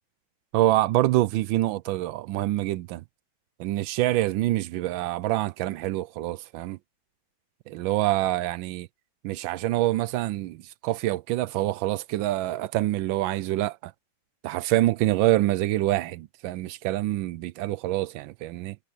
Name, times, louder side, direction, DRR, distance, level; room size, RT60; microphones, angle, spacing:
voice 1, 0.5-3.0 3.6-6.8 7.7-8.9 9.2-13.9 14.4-18.8, right 15 dB, 80° right, 1.3 m, -26 dB
omnidirectional pair, 2.2 m